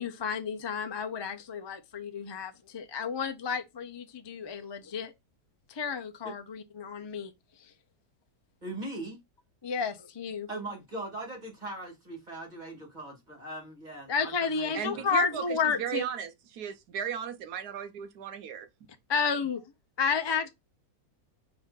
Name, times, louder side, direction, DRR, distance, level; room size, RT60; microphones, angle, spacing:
voice 1, 0.0-5.1 5.7-7.3 7.6-7.7 9.6-10.5 14.1-16.0 19.1-19.6 20.0-20.5, left 6 dB, 35° left, 0.4 m, -31 dB
voice 2, 8.6-9.2 10.5-15.0, right 2 dB, 25° right, 2.7 m, -40 dB
voice 3, 14.7-18.7, right 8 dB, 75° right, 1.1 m, -35 dB
5.5 x 3.5 x 5.2 m
omnidirectional pair, 1.8 m